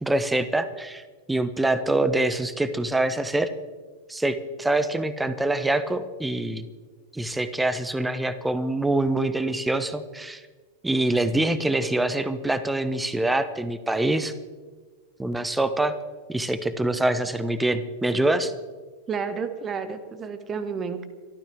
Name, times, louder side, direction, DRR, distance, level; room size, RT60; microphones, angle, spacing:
voice 1, 0.0-3.5 4.1-6.6 7.1-10.4 10.8-14.3 15.2-15.9 16.3-18.5, right 2 dB, 5° right, 13 dB, 1.1 m, -25 dB
voice 2, 19.1-21.1, right 5 dB, 25° right, 10 dB, 1.6 m, -31 dB
26.0 x 13.5 x 3.5 m, 1.4 s
figure-of-eight pair, 90°, 0 cm